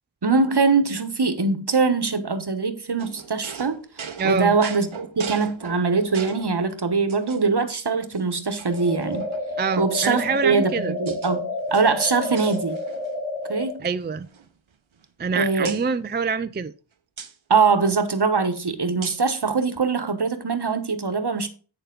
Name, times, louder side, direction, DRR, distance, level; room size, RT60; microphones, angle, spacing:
voice 1, 0.2-3.8 4.2-4.9 5.2-9.3 9.8-12.8 13.5-13.8 15.3-15.8 17.5-21.5, right 4 dB, 60° right, 1.1 m, -22 dB
sound 1, 3.0-6.6 7.1-7.7 8.1-8.2 8.6-9.6 10.4-11.3 11.6-13.2 13.4-13.7 14.0-15.3 15.6-15.9 17.2-17.3 19.0-19.3, right 6 dB, 85° right, 0.8 m, -39 dB
voice 2, 4.2-4.6 9.6-10.9 13.8-14.3 15.2-16.7, right 5 dB, 25° right, 0.4 m, -25 dB
sound 2, 8.7-13.7, left 2 dB, 55° left, 2.8 m, -30 dB
8.1 x 6.8 x 3.9 m
wide cardioid pair, 40°, 46 cm